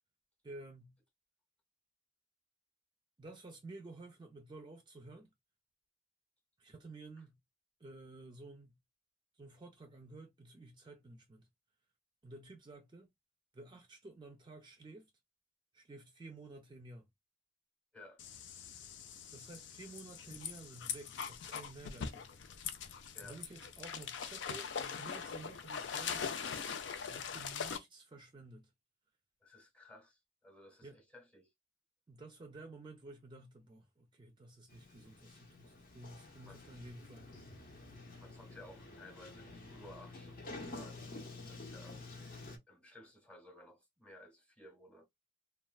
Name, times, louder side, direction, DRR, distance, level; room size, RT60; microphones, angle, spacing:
voice 1, 0.4-1.0 3.2-5.3 6.6-7.4 7.8-8.8 9.4-11.5 12.2-13.1 13.5-15.1 15.7-17.1 19.3-22.4 23.2-26.5 27.1-28.7 30.8-31.0 32.1-37.5, right 2 dB, 25° right, 0.4 m, -52 dB
sound 1, 18.2-27.8, left 7 dB, 85° left, 0.5 m, -42 dB
voice 2, 29.4-31.5 36.5-36.6 38.2-42.0 42.7-45.1, left 1 dB, 5° left, 0.8 m, -57 dB
Sliding door, 34.7-42.6, left 2 dB, 50° left, 0.7 m, -50 dB
3.2 x 2.3 x 2.3 m
head